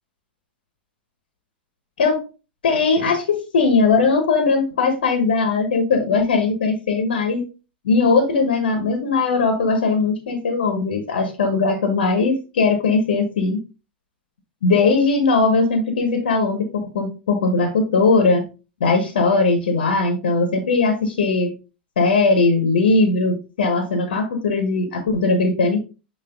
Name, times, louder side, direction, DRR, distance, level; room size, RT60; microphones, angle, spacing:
voice 1, 2.6-7.4 7.8-13.6 14.6-18.4 18.8-21.5 22.0-25.8, left 3 dB, 65° left, 5 dB, 1.3 m, -19 dB
8.7 x 3.0 x 3.8 m, 0.31 s
figure-of-eight pair, 95°, 6 cm